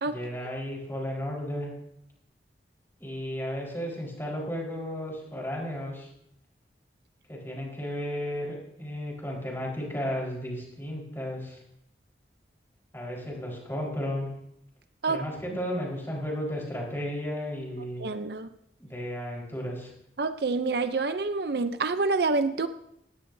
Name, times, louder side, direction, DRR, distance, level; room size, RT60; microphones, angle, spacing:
voice 1, 0.0-1.7 3.0-6.1 7.3-11.6 12.9-14.3 15.0-18.0 18.8-19.9, equal, 15° left, -2 dB, 4.5 m, -34 dB
voice 2, 18.0-18.5 20.2-22.7, right 3 dB, 60° right, 10 dB, 0.6 m, -27 dB
18.5 x 17.0 x 2.7 m, 0.76 s
head